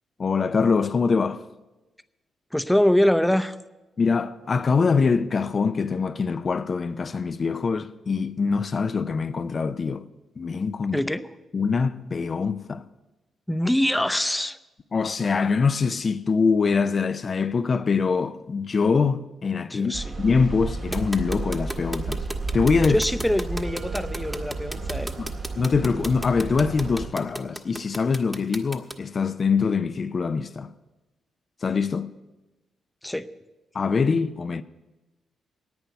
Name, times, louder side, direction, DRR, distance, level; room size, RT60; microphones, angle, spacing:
voice 1, 0.2-1.4 4.0-10.1 10.4-11.0 11.5-12.8 14.9-19.9 20.2-22.2 22.5-23.0 25.2-25.3 25.6-30.7 31.6-32.1 33.7-34.6, left 5 dB, 45° left, 0.5 m, -24 dB
voice 2, 2.5-3.6 10.9-11.3 13.5-14.6 19.7-20.2 22.8-25.1 33.0-33.3, left 1 dB, 5° left, 0.7 m, -24 dB
sound 1, 19.9-27.1, right 3 dB, 55° right, 1.6 m, -32 dB
sound 2, 20.9-28.9, right 1 dB, 15° right, 1.2 m, -34 dB
sound 3, 23.6-26.5, right 7 dB, 70° right, 1.8 m, -47 dB
10.5 x 9.1 x 8.1 m
hypercardioid pair, 45°, 0 cm